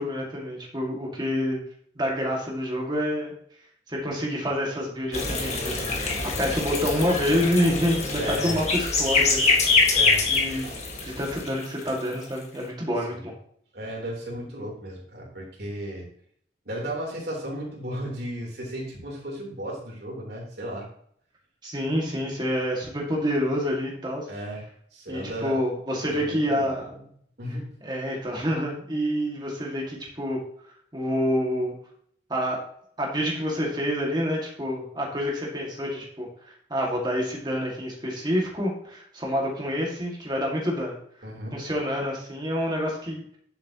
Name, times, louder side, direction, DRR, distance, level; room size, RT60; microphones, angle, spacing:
voice 1, 0.0-1.6 2.0-3.3 3.9-6.1 6.4-10.0 10.3-10.7 11.0-13.3 21.6-24.3 25.1-26.9 27.8-30.4 30.9-31.7 32.3-32.6 33.0-41.0 41.5-43.4, equal, 25° right, -2 dB, 2.0 m, -27 dB
sound 1, 5.1-12.2, left 3 dB, 40° left, 1.7 m, -24 dB
voice 2, 8.2-8.7 9.9-10.3 10.6-10.8 13.1-13.3 13.7-16.1 16.7-20.9 24.3-24.7 24.9-25.6 26.1-26.9 27.4-27.8 41.2-41.6, equal, 60° right, -2 dB, 3.6 m, -34 dB
10.5 x 7.5 x 3.0 m, 0.62 s
head